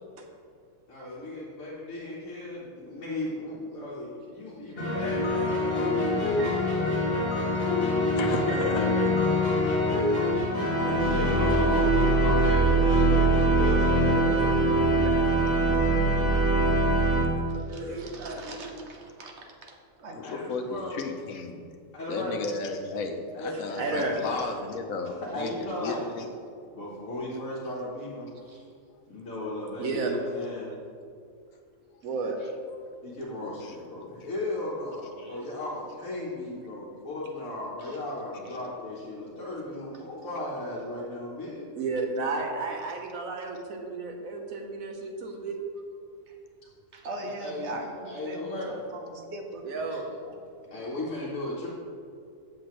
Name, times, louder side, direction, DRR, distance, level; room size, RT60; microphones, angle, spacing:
voice 1, 0.9-6.9 10.6-14.6 15.3-15.5 20.2-21.0 21.9-22.5 23.3-24.5 25.3-26.1 26.7-28.6 29.1-30.7 33.0-41.7 47.2-47.7 48.0-48.8 49.7-50.0 50.6-51.7, left 1 dB, 65° left, -7 dB, 1.5 m, -36 dB
sound 1, 4.8-17.2, right 1 dB, 35° left, 1.4 m, -23 dB
voice 2, 7.6-9.2 10.7-11.5 17.8-18.0 20.1-21.6 22.1-26.2 33.6-33.7, left 4 dB, 80° left, 5 dB, 1.2 m, -35 dB
voice 3, 11.3-11.7 14.1-14.7 15.0-16.5 17.7-18.8 23.5-24.1 29.4-30.1 32.0-32.4 41.7-45.6 49.6-50.1, right 3 dB, 80° right, 2 dB, 1.3 m, -34 dB
voice 4, 17.5-20.2 35.2-35.3 37.8-38.0 46.9-49.6, right 2 dB, 60° right, 2 dB, 1.2 m, -41 dB
7.7 x 7.4 x 3.1 m, 2.3 s
omnidirectional pair, 1.4 m